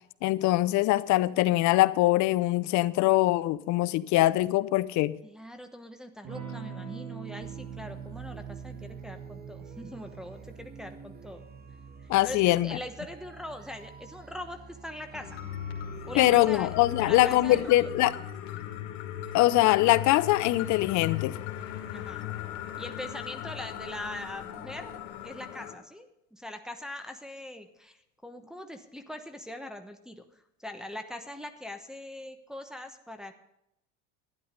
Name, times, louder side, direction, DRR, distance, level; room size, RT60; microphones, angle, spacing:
voice 1, 0.2-5.2 12.1-12.8 16.2-18.1 19.3-21.3, left 17 dB, 55° left, 0.6 m, -23 dB
voice 2, 5.2-11.4 12.2-15.4 16.1-16.7 17.0-17.8 21.9-22.2 22.8-25.0 25.2-30.2 30.6-33.3, left 1 dB, ahead, 1.1 m, -42 dB
Electric guitar / Strum, 6.2-14.5, right 7 dB, 50° right, 3.6 m, -44 dB
sound 1, 7.4-17.7, right 4 dB, 25° right, 1.0 m, -49 dB
sound 2, 15.1-25.7, left 10 dB, 70° left, 2.1 m, -38 dB
12.0 x 10.5 x 5.2 m
supercardioid pair, 95°, 36 cm